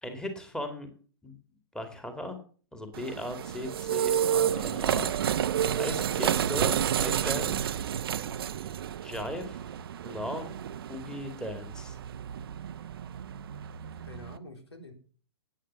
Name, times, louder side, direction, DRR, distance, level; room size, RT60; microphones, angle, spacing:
voice 1, 0.0-0.9 1.2-1.4 1.7-2.4 2.7-5.1 5.8-7.6 9.0-9.6 10.0-10.5 10.9-12.0, equal, 5° left, 6 dB, 2.2 m, -37 dB
sound 1, 2.9-14.4, right 9 dB, 60° right, 0.7 m, -30 dB
voice 2, 13.7-14.9, left 1 dB, 80° left, 7 dB, 3.5 m, -48 dB
11.5 x 9.0 x 6.9 m, 0.42 s
figure-of-eight pair, 115°, 14 cm